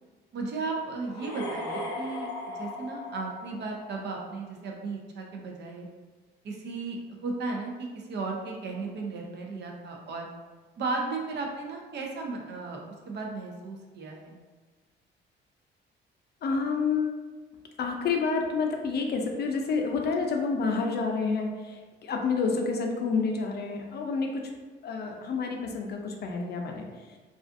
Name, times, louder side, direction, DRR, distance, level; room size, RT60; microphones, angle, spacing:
voice 1, 0.3-5.9 6.4-10.3 10.8-12.8 13.1-14.4, right 3 dB, 60° right, 0 dB, 0.5 m, -35 dB
sound 1, 1.0-4.0, left 1 dB, 85° left, 0.7 m, -37 dB
voice 2, 16.4-17.1 17.8-24.4 24.8-26.9, left 4 dB, 55° left, 2 dB, 0.4 m, -29 dB
2.4 x 2.4 x 2.5 m, 1.3 s
cardioid pair, 90°, 20 cm